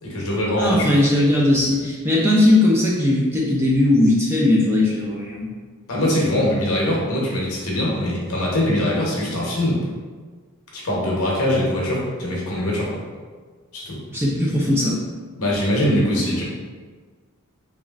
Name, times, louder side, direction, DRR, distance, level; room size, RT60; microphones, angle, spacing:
voice 1, 0.0-1.0 5.9-9.8 10.7-13.0 13.7-14.0 15.4-16.4, left 1 dB, 65° left, -4 dB, 0.8 m, -22 dB
voice 2, 0.6-5.5 14.1-15.0 16.1-16.2, left 1 dB, 10° right, -4 dB, 0.3 m, -18 dB
2.9 x 2.4 x 2.3 m, 1.5 s
head